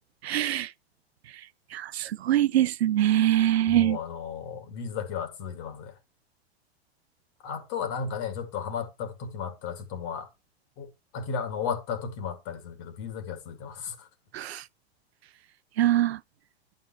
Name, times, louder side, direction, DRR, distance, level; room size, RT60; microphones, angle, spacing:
voice 1, 0.2-0.7 1.7-4.0 14.3-14.6 15.8-16.2, right 13 dB, 80° right, 0.5 m, -23 dB
voice 2, 3.7-5.9 7.4-10.3 10.8-14.1, left 6 dB, 50° left, 2.5 m, -34 dB
11.0 x 5.6 x 4.5 m
hypercardioid pair, 100°, 31 cm